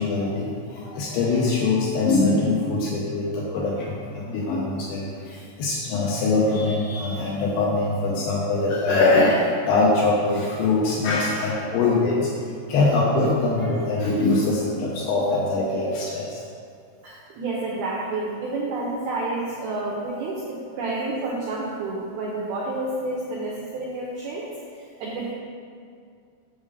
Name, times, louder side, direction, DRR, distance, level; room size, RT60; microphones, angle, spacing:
voice 1, 0.0-16.4, left 3 dB, 80° left, -4 dB, 2.5 m, -23 dB
voice 2, 17.0-24.5 24.7-25.3, right 2 dB, 85° right, -4 dB, 2.1 m, -29 dB
7.2 x 3.8 x 6.4 m, 2.3 s
omnidirectional pair, 5.4 m